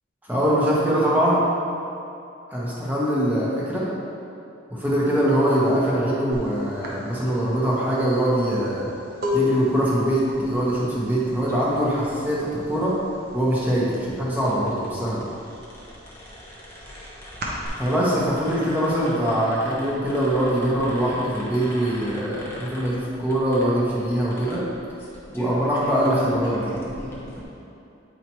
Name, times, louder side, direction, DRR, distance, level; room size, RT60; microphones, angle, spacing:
voice 1, 0.2-1.4 2.5-3.9 4.7-8.9 9.3-13.0 13.3-15.2 17.8-24.6 25.3-26.7, right 1 dB, 10° right, -7 dB, 1.2 m, -23 dB
sound 1, 6.3-6.5 6.8-12.5 12.8-13.3 13.6-14.7 15.1-17.7, left 3 dB, 50° right, 0.9 m, -30 dB
sound 2, 10.2-27.4, equal, 10° left, 1.0 m, -40 dB
8.5 x 4.9 x 3.0 m, 2.7 s
head